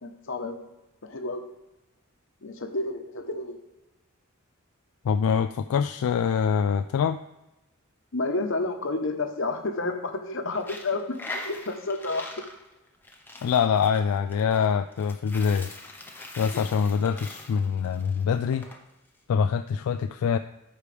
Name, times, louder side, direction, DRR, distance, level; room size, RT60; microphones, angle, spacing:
voice 1, 0.0-0.6 1.0-1.4 2.4-3.6 8.1-12.3 16.5-16.6, left 2 dB, 60° left, 5 dB, 1.0 m, -30 dB
voice 2, 5.0-7.2 13.4-15.7 16.4-18.7 19.3-20.4, left 6 dB, 80° left, 9 dB, 0.3 m, -24 dB
Coin (dropping), 10.5-18.8, left 2 dB, 10° left, 0.8 m, -42 dB
13.5 x 4.9 x 3.3 m, 0.97 s
head